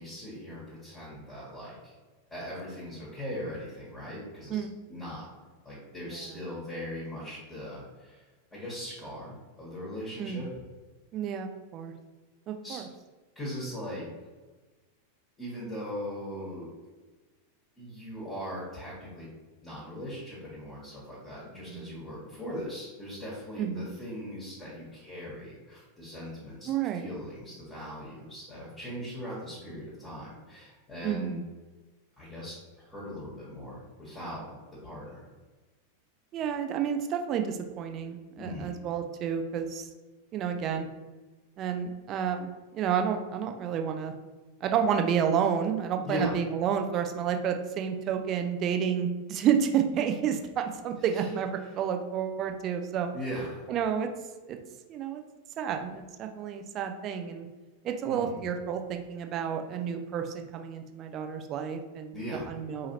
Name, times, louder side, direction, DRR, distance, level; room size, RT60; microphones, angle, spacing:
voice 1, 0.0-1.9 2.3-5.3 5.6-8.2 8.5-10.5 12.6-12.8 13.3-14.0 15.4-16.7 17.8-19.3 19.6-31.4 32.2-35.2 38.4-38.8 46.0-46.4 51.1-51.3 53.1-53.6 58.0-58.5 62.1-62.5, equal, 15° left, -7 dB, 1.4 m, -39 dB
voice 2, 10.2-10.5 11.1-11.9 12.5-12.8 21.7-21.9 23.6-23.9 26.7-27.1 31.0-31.4 36.3-39.9 40.3-40.9 41.6-42.5 42.7-44.1 44.6-53.1 53.7-54.1 54.5-54.6 54.9-55.2 55.6-57.5 57.8-62.2 62.5-62.9, right 8 dB, 35° right, 6 dB, 0.4 m, -30 dB
4.7 x 2.8 x 2.9 m, 1.3 s
figure-of-eight pair, 90°, 0 cm